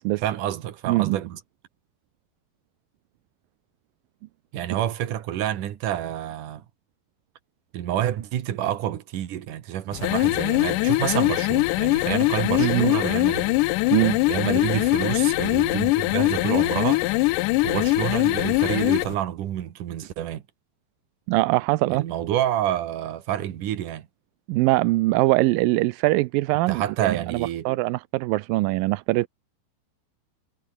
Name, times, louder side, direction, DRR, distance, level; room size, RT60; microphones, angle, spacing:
voice 1, 0.2-1.4 4.5-6.6 7.7-13.6 14.3-17.0 17.6-20.4 21.9-24.1 26.7-27.7, right 11 dB, 70° right, 3.1 m, -28 dB
voice 2, 0.9-1.2 12.6-12.9 13.9-14.2 21.3-22.0 24.5-29.3, right 20 dB, 90° right, 2.4 m, -22 dB
sound 1, 9.9-19.1, left 22 dB, 80° left, 1.9 m, -22 dB
omnidirectional pair, 4.0 m